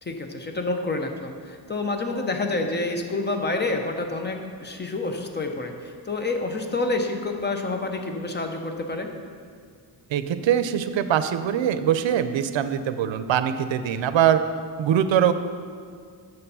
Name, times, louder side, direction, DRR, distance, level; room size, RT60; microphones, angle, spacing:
voice 1, 0.0-9.1, left 2 dB, 25° left, 4 dB, 0.6 m, -28 dB
voice 2, 10.1-14.4 14.8-15.3, right 9 dB, 90° right, 11 dB, 0.6 m, -22 dB
6.8 x 6.6 x 5.5 m, 2.1 s
wide cardioid pair, 175°, 44 cm